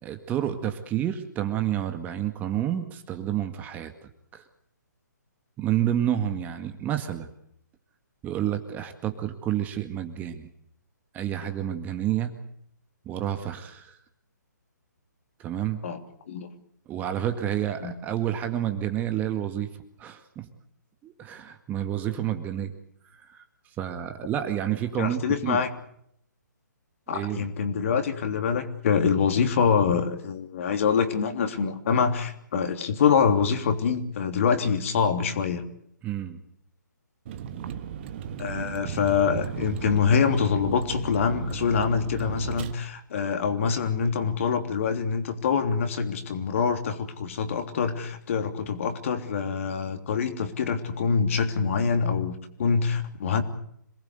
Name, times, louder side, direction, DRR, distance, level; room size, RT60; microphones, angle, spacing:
voice 1, 0.0-4.4 5.6-7.3 8.2-10.5 11.1-12.3 13.1-14.0 15.4-15.8 16.9-19.7 20.0-20.5 21.0-22.7 23.2-23.4 23.8-25.6 27.1-27.4 36.0-36.4, right 11 dB, 15° right, 7 dB, 1.9 m, -29 dB
voice 2, 25.0-25.7 27.1-35.6 38.4-53.4, left 6 dB, 45° left, 6 dB, 3.3 m, -25 dB
Vehicle, 37.3-42.7, right 8 dB, 35° right, 1.7 m, -35 dB
27.0 x 20.0 x 8.2 m, 0.70 s
figure-of-eight pair, 135°, 10 cm